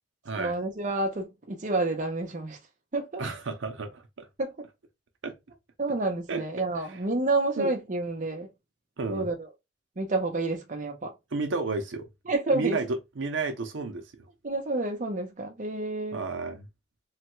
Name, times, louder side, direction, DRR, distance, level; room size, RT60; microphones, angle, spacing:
voice 1, 0.4-2.6 2.9-3.2 4.4-4.5 5.8-8.5 9.1-9.5 10.0-11.1 12.3-12.8 14.4-16.2, right 2 dB, 40° right, 0.7 m, -29 dB
voice 2, 3.2-4.3 5.2-5.3 6.3-6.4 6.9-7.0 7.6-7.7 9.0-9.3 11.3-12.1 12.5-14.3 16.1-16.7, right 3 dB, 80° right, 0.6 m, -32 dB
3.2 x 2.2 x 3.0 m
head